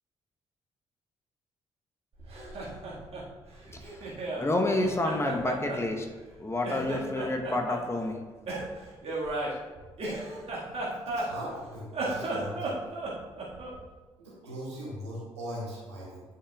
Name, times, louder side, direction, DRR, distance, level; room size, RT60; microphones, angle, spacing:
Laughter, 2.2-4.5 4.8-6.3 6.6-7.8 8.5-11.6 11.9-13.8, right 2 dB, 45° right, 1.7 m, -35 dB
voice 1, 3.7-4.1 4.4-6.1 6.4-8.2, left 2 dB, 20° left, 3 dB, 0.9 m, -29 dB
voice 2, 11.1-12.8 14.2-16.2, equal, 85° right, -7 dB, 1.7 m, -40 dB
9.7 x 5.7 x 2.3 m, 1.3 s
figure-of-eight pair, 40°, 14 cm